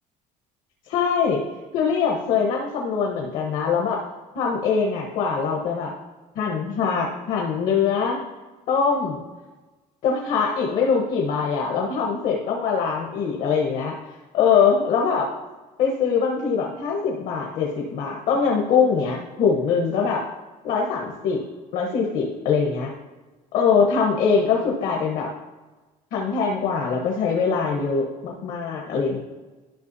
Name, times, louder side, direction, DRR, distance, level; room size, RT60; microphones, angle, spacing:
voice 1, 0.9-1.4 1.7-4.0 4.3-5.9 6.3-8.2 8.7-9.2 10.0-14.0 14.3-15.3 15.8-20.3 20.6-21.4 21.7-22.9 23.5-25.3 26.1-29.2, left 6 dB, 65° left, -1 dB, 1.2 m, -22 dB
11.5 x 5.7 x 2.7 m, 1.2 s
cardioid pair, 165°, 15 cm